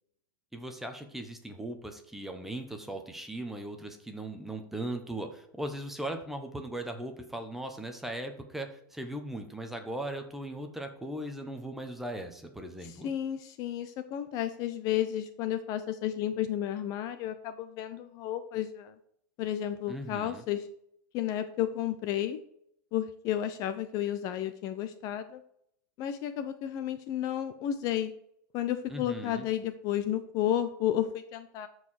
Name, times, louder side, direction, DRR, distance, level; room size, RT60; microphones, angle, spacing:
voice 1, 0.5-13.1 19.9-20.4 28.9-29.5, right 1 dB, 5° right, 5 dB, 1.2 m, -38 dB
voice 2, 12.8-18.9 19.4-20.7 21.1-22.4 22.9-25.4 26.0-28.1 28.5-31.7, left 11 dB, 35° left, 10 dB, 0.7 m, -32 dB
13.0 x 4.8 x 6.5 m, 0.71 s
supercardioid pair, 160°, 11 cm